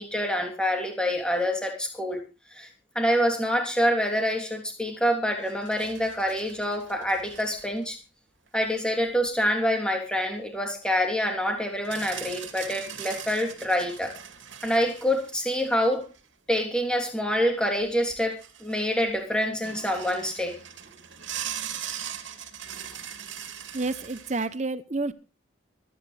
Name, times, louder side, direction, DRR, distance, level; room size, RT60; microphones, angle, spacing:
voice 1, 0.0-2.2 2.5-2.7 2.9-8.0 8.5-14.1 14.6-16.1 16.5-20.6, equal, 5° left, 3.1 m, -26 dB
sound 1, 5.3-7.8 8.5-8.6 11.8-16.2 17.8-17.9 18.1-19.2 19.6-24.5, right 9 dB, 85° right, 2.4 m, -40 dB
voice 2, 23.7-25.1, right 3 dB, 35° right, 0.8 m, -29 dB
24.5 x 10.0 x 3.3 m
head